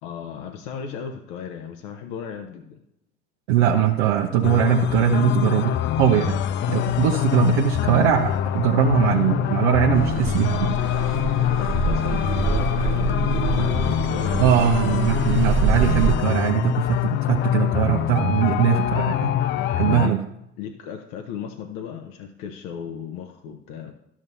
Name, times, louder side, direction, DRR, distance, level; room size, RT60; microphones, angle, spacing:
voice 1, 0.0-2.8 11.3-15.0 20.0-20.2 20.6-23.9, left 7 dB, 60° left, 5 dB, 0.9 m, -36 dB
voice 2, 3.5-5.7 6.0-6.4 6.7-10.8 14.4-19.3 19.8-20.2, right 10 dB, 70° right, 2 dB, 0.8 m, -21 dB
sound 1, 4.4-20.1, left 12 dB, 35° left, 0.4 m, -24 dB
Car passing by / Accelerating revving vroom, 9.9-16.1, right 5 dB, 35° right, 0.9 m, -26 dB
12.0 x 7.3 x 2.7 m, 0.82 s
hypercardioid pair, 70°, 35 cm